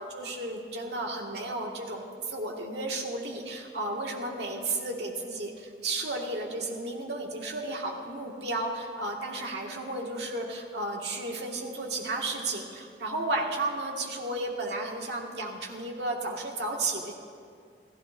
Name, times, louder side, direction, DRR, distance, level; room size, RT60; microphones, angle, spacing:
voice 1, 0.0-17.1, right 2 dB, 70° right, 0 dB, 1.9 m, -33 dB
28.5 x 15.0 x 2.6 m, 2.2 s
head